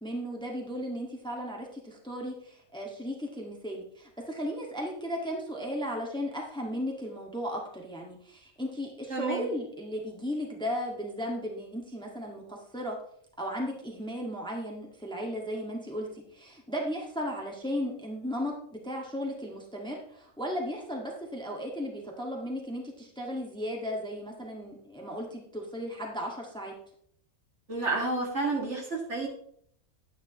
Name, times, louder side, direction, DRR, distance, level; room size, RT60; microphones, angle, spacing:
voice 1, 0.0-13.0 13.4-26.7, equal, 5° left, -1 dB, 1.6 m, -35 dB
voice 2, 9.1-9.5 27.7-29.3, right 3 dB, 55° right, -1 dB, 2.4 m, -30 dB
11.0 x 9.8 x 3.0 m, 0.66 s
omnidirectional pair, 1.5 m